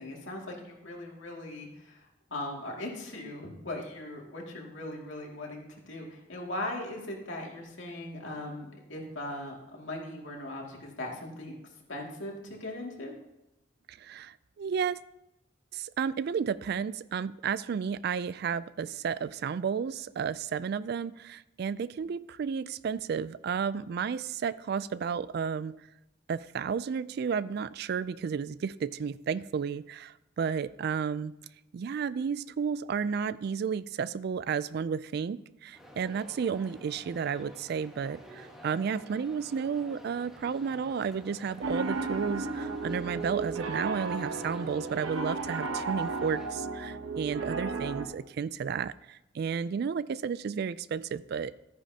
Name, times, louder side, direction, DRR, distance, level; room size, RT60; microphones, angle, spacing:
voice 1, 0.0-11.6 11.9-13.1, left 1 dB, 70° left, -1 dB, 2.3 m, -39 dB
voice 2, 13.9-15.0 15.7-25.8 26.3-31.3 31.7-51.5, right 6 dB, 55° right, 18 dB, 0.3 m, -32 dB
sound 1, 35.7-46.5, equal, ahead, 1.2 m, -50 dB
Piano, 41.6-48.1, right 4 dB, 90° right, 0.9 m, -34 dB
13.5 x 9.8 x 2.8 m, 0.91 s
head